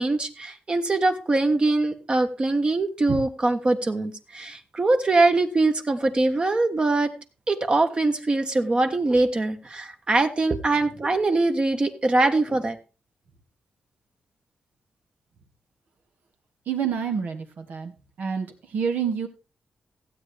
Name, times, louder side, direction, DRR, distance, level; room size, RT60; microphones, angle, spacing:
voice 1, 0.0-7.1 7.5-12.8, right 2 dB, 35° right, 6 dB, 1.4 m, -23 dB
voice 2, 16.7-17.9 18.2-18.5 18.7-19.3, right 7 dB, 80° right, 3 dB, 2.0 m, -27 dB
15.5 x 8.6 x 3.4 m, 0.32 s
cardioid pair, 90°, 3 cm